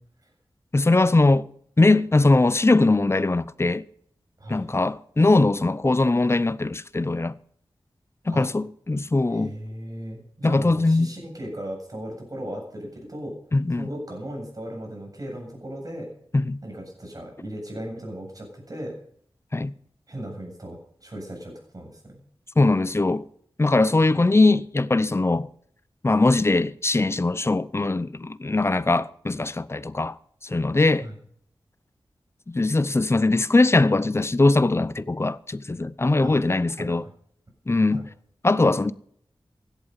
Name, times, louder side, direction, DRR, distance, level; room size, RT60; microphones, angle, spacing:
voice 1, 0.7-1.5 1.8-3.9 4.5-7.3 8.3-9.6 10.4-11.1 13.5-13.9 16.3-16.6 19.5-19.7 22.6-23.3 23.6-25.5 26.0-30.2 30.4-31.1 32.5-37.0 37.7-38.1 38.4-38.9, left 2 dB, 30° left, 0.6 m, -21 dB
voice 2, 4.4-4.7 8.3-8.5 9.3-13.3 13.8-16.1 16.6-18.9 20.1-22.1 31.0-31.2 36.2-36.4 36.8-37.1 37.9-38.0, right 1 dB, 40° right, 7.8 m, -37 dB
16.5 x 11.5 x 5.5 m
wide cardioid pair, 90°, 9 cm